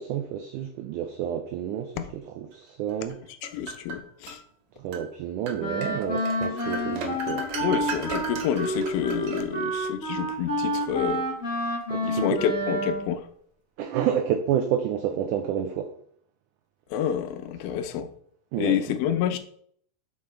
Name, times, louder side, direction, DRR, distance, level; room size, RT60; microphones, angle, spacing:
voice 1, 0.0-3.2 4.8-7.4 11.9-12.4 13.8-15.9 18.5-18.8, right 9 dB, 90° right, 1.7 m, -29 dB
sound 1, 3.1-4.4 4.9-5.1 5.5-9.9, right 3 dB, 70° right, 1.3 m, -36 dB
voice 2, 3.4-4.4 7.6-11.3 12.0-13.3 16.9-18.1 18.6-19.4, left 9 dB, 85° left, 2.5 m, -28 dB
Wind instrument woodwind instrument, 5.6-13.1, equal, 30° left, 1.6 m, -29 dB
6.4 x 5.5 x 4.4 m
omnidirectional pair, 4.1 m